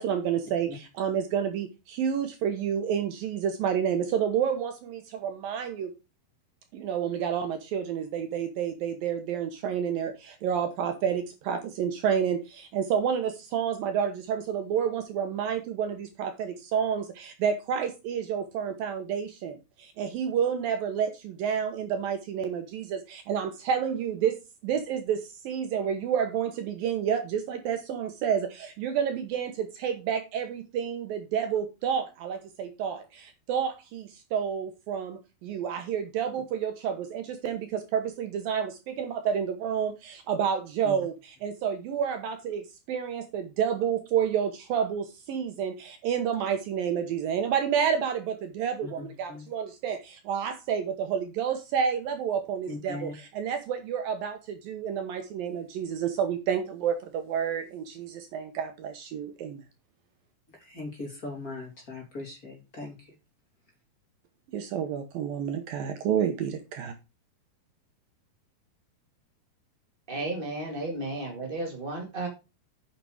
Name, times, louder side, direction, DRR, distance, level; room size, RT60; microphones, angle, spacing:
voice 1, 0.0-5.9 6.7-24.4 24.6-59.6 64.5-66.9, right 8 dB, 70° right, 7 dB, 2.5 m, -29 dB
voice 2, 48.8-49.5 52.7-53.1 60.5-63.1, left 3 dB, 25° left, 0 dB, 2.8 m, -40 dB
voice 3, 70.1-72.3, right 2 dB, 45° right, 1 dB, 0.7 m, -33 dB
9.2 x 6.8 x 4.9 m, 0.27 s
omnidirectional pair, 4.9 m